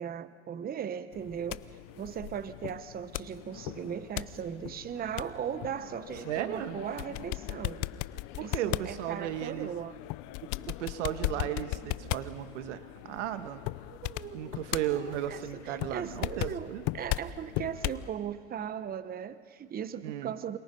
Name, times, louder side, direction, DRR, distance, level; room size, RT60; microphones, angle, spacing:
voice 1, 0.0-1.7 2.0-7.8 8.4-9.9 13.9-20.6, right 8 dB, 25° right, 13 dB, 1.0 m, -38 dB
sound 1, 1.1-18.1, left 17 dB, 60° left, 0.7 m, -38 dB
voice 2, 6.2-6.8 8.4-9.7 10.4-13.7 14.3-16.8 20.0-20.3, right 11 dB, 85° right, 11 dB, 1.6 m, -35 dB
29.0 x 27.0 x 5.4 m, 2.1 s
supercardioid pair, 115°, 35 cm